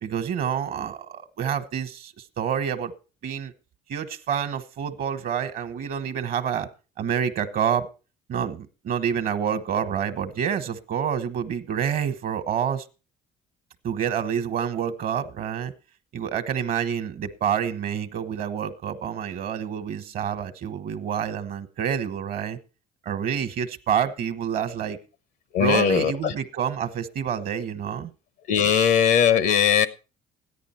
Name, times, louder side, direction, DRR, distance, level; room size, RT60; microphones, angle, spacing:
voice 1, 0.0-2.9 3.2-3.5 3.9-6.7 7.0-7.9 8.3-12.8 13.8-15.7 16.1-22.6 23.0-25.0 25.6-28.1, right 8 dB, 60° right, 10 dB, 1.2 m, -28 dB
voice 2, 25.5-26.3 28.5-29.9, left 8 dB, 80° left, 13 dB, 0.9 m, -20 dB
13.5 x 10.5 x 4.3 m, 0.33 s
cardioid pair, 110°, 17 cm